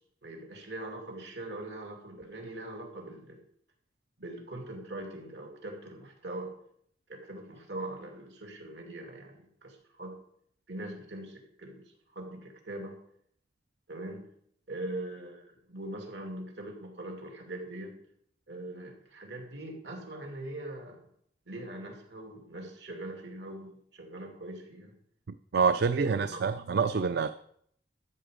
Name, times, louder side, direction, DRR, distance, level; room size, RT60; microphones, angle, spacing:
voice 1, 0.2-3.4 4.2-6.5 7.1-10.2 10.7-13.0 13.9-14.2 14.7-17.9 18.5-21.0 21.5-24.9 25.9-26.4, right 1 dB, 80° right, 2 dB, 2.7 m, -41 dB
voice 2, 25.5-27.3, right 5 dB, 65° right, 12 dB, 0.4 m, -26 dB
13.0 x 7.9 x 5.1 m, 0.67 s
head